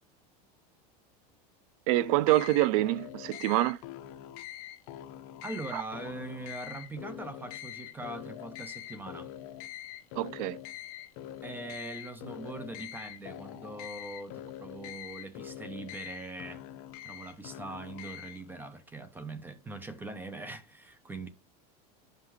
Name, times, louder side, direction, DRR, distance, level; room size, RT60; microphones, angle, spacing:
sound 1, 1.9-18.5, left 12 dB, 55° left, 0.8 m, -44 dB
voice 1, 1.9-3.8 5.7-5.8 10.2-10.6, right 16 dB, 60° right, 0.4 m, -26 dB
voice 2, 5.4-9.3 11.4-16.6 17.0-21.3, right 2 dB, 10° right, 0.7 m, -42 dB
10.5 x 5.7 x 3.1 m
supercardioid pair, 165°, 20 cm